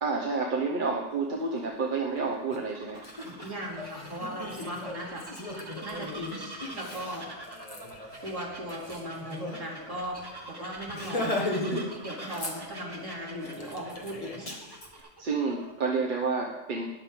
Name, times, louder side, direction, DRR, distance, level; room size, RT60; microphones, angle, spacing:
voice 1, 0.0-3.0 11.7-12.0 15.2-16.9, right 4 dB, 45° right, 1 dB, 1.0 m, -30 dB
Bird vocalization bird call bird song, 1.0-16.0, right 1 dB, 20° right, 1.1 m, -45 dB
Laughter, 2.5-2.6 2.9-9.6 9.9-10.0 10.3-10.5 10.9-11.9 12.2-13.0 13.4-14.9, left 1 dB, 25° left, 1.6 m, -37 dB
voice 2, 3.2-5.3 5.8-7.3 8.2-11.4 12.0-14.5, equal, 80° right, -4 dB, 3.2 m, -38 dB
19.0 x 6.7 x 3.7 m, 1.0 s
omnidirectional pair, 1.3 m